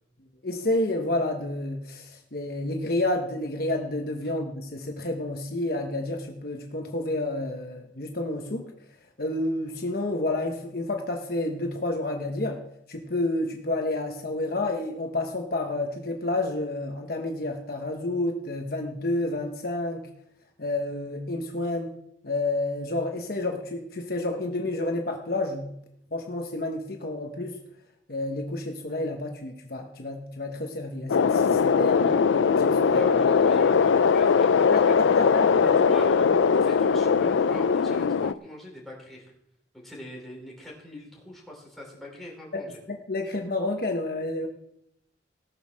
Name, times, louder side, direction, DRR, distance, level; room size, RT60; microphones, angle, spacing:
voice 1, 0.4-8.7 9.2-12.6 12.9-20.0 20.6-21.9 22.2-25.7 26.1-27.6 28.1-32.1 32.5-33.0 34.7-35.7 42.5-42.6 42.9-44.5, left 2 dB, 50° left, 2 dB, 1.1 m, -30 dB
sound 1, 31.1-38.3, left 6 dB, 85° left, 0.4 m, -20 dB
voice 2, 31.9-32.2 32.8-34.5 35.1-35.3 35.6-39.3 39.7-42.8, left 1 dB, ahead, -4 dB, 3.9 m, -42 dB
17.0 x 6.5 x 6.3 m, 0.78 s
head